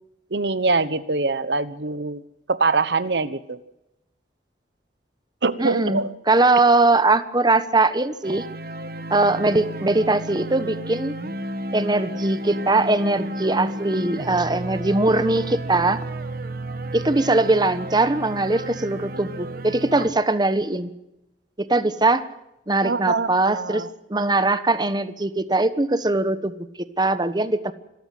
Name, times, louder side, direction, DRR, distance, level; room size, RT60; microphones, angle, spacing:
voice 1, 0.3-2.2 2.5-3.6 5.4-6.1 22.8-23.9, right 3 dB, 75° right, 14 dB, 1.1 m, -23 dB
voice 2, 5.6-8.5 9.1-11.2 11.7-16.0 16.9-20.9 21.6-22.3 22.7-23.8 24.1-26.5 27.0-27.7, right 2 dB, 25° right, 12 dB, 1.2 m, -21 dB
sound 1, 8.2-20.1, right 1 dB, 60° right, 1.7 m, -32 dB
26.0 x 14.0 x 7.8 m, 0.89 s
head